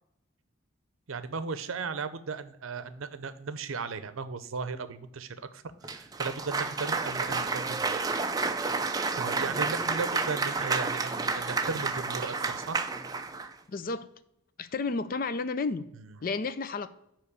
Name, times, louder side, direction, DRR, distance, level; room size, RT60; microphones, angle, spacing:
voice 1, 1.1-8.0 9.2-12.8, right 4 dB, 80° right, 12 dB, 0.6 m, -36 dB
Cheering / Applause, 5.8-13.5, right 4 dB, 20° right, 0.4 m, -30 dB
voice 2, 13.7-14.1 14.6-15.9 16.2-16.9, left 4 dB, 45° left, 13 dB, 0.4 m, -31 dB
9.3 x 3.1 x 6.7 m, 0.81 s
head